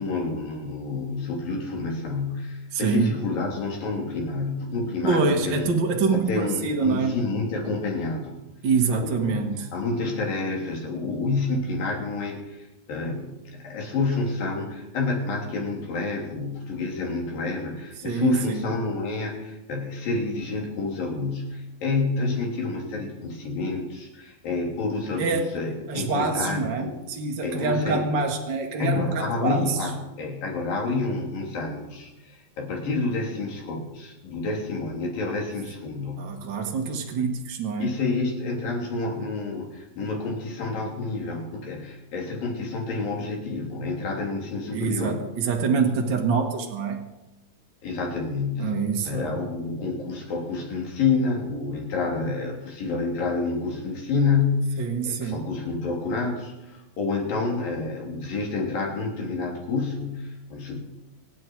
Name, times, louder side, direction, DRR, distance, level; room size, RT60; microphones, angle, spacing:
voice 1, 0.0-5.7 6.1-8.4 9.0-9.4 9.7-26.9 27.4-28.0 28.8-36.3 37.8-45.2 47.8-48.7 49.0-60.8, left 3 dB, 70° left, -1 dB, 4.8 m, -29 dB
voice 2, 2.7-3.2 5.0-7.2 8.6-9.7 18.0-18.6 25.2-25.5 25.9-29.9 36.2-37.9 44.7-47.0 48.6-49.4 54.8-55.5, right 4 dB, 45° right, 2 dB, 1.5 m, -25 dB
25.0 x 9.8 x 4.6 m, 0.97 s
omnidirectional pair, 4.2 m